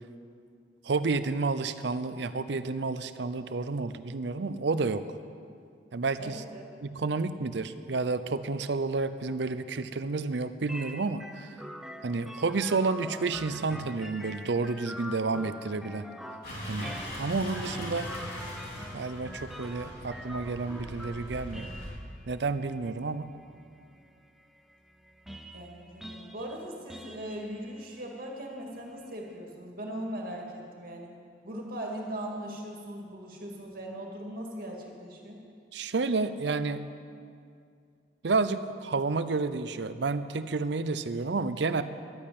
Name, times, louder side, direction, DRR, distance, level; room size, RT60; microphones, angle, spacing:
voice 1, 0.8-5.0 5.9-6.4 6.8-11.5 12.0-16.0 16.7-18.1 18.9-21.7 22.3-23.3 35.7-36.8 38.2-41.8, right 3 dB, 65° right, 13 dB, 0.6 m, -30 dB
voice 2, 6.2-6.6 25.5-31.1 31.4-35.4, right 1 dB, 50° right, 0 dB, 2.3 m, -39 dB
sound 1, 10.7-29.4, equal, ahead, 0.5 m, -46 dB
sound 2, 16.4-21.9, equal, 60° left, 4.2 m, -40 dB
11.5 x 8.6 x 8.5 m, 2.3 s
head